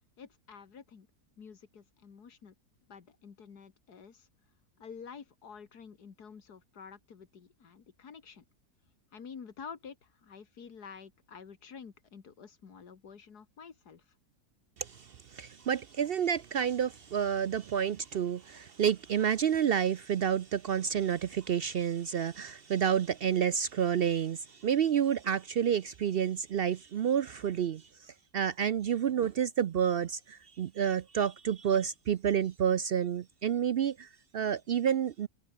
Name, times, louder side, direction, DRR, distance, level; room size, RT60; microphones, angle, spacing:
voice 1, 0.2-1.1 1.4-2.5 2.9-4.3 4.8-8.4 9.1-14.1, left 6 dB, 90° left, 2.4 m, -49 dB
voice 2, 14.8-27.8 28.3-35.3, right 8 dB, 70° right, 0.5 m, -29 dB
omnidirectional pair, 1.6 m